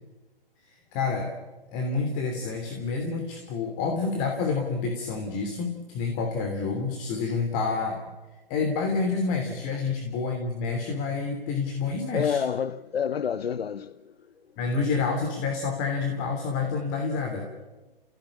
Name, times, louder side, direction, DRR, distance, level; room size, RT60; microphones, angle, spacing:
voice 1, 0.6-1.3 1.7-8.0 8.5-12.4 14.6-17.5, left 4 dB, 30° left, 3.0 m, -28 dB
voice 2, 12.1-14.1 17.4-17.6, left 7 dB, 85° left, 0.8 m, -29 dB
29.5 x 16.5 x 8.7 m
hypercardioid pair, 135°, 30 cm